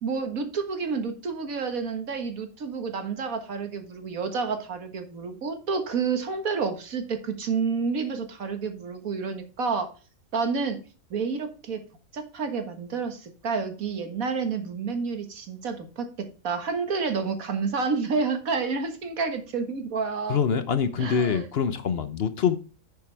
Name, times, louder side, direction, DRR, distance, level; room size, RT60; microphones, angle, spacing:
voice 1, 0.0-9.9 10.3-10.8 11.1-11.9 12.1-20.4 21.0-21.4, right 5 dB, 90° right, 1.9 m, -29 dB
voice 2, 20.3-22.6, left 7 dB, 55° left, 0.9 m, -25 dB
10.5 x 6.9 x 3.4 m
omnidirectional pair, 1.4 m